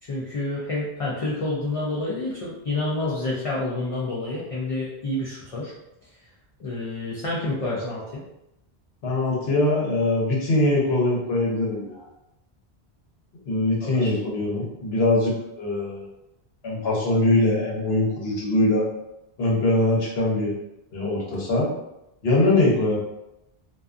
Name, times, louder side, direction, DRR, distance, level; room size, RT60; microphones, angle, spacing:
voice 1, 0.0-5.7 6.6-8.2 13.8-14.1, left 2 dB, 50° left, -5 dB, 0.4 m, -28 dB
voice 2, 9.0-12.1 13.5-16.1 16.6-18.9 19.4-20.5 20.9-21.7 22.2-23.0, left 2 dB, 75° left, -3 dB, 1.1 m, -22 dB
2.5 x 2.3 x 2.4 m, 0.87 s
omnidirectional pair, 1.1 m